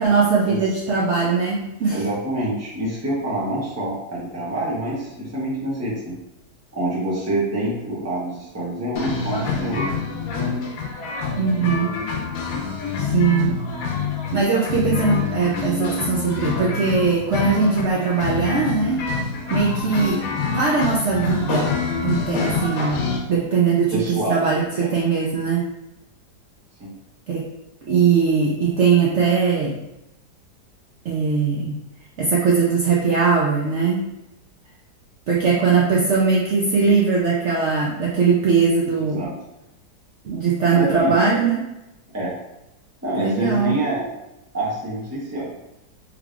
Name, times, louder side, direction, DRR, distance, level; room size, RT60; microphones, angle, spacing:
voice 1, 0.0-2.0 11.4-11.9 13.0-13.6 14.3-19.0 19.5-20.2 20.5-21.8 22.0-23.0 23.3-25.6 27.3-27.5 27.9-29.8 31.0-31.8 32.2-34.1 35.3-39.3 40.2-41.6 43.2-43.8, right 5 dB, 85° right, -4 dB, 0.6 m, -20 dB
voice 2, 1.9-6.1 6.7-9.8 23.9-24.9 26.8-26.9 39.2-39.3 40.7-41.1 42.1-42.3 43.0-44.1 44.5-45.4, right 1 dB, 15° right, -5 dB, 0.5 m, -26 dB
sound 1, 9.0-23.2, left 5 dB, 70° left, 1.0 m, -26 dB
3.4 x 3.3 x 2.4 m, 0.90 s
omnidirectional pair, 1.8 m